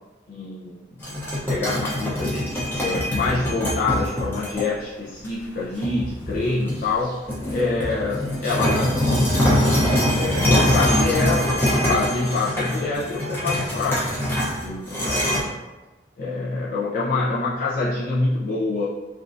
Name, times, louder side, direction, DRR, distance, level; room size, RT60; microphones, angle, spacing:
voice 1, 0.3-0.8 1.1-1.2 1.5-2.4 2.8-7.2 7.5-9.8 10.2-14.2 14.5-15.5 16.2-18.9, left 3 dB, 50° left, -9 dB, 0.5 m, -26 dB
sound 1, 1.0-4.6 5.2-5.3 5.8-6.9 7.3-15.4, left 1 dB, 10° left, 0.7 m, -23 dB
3.5 x 2.5 x 2.5 m, 1.2 s
head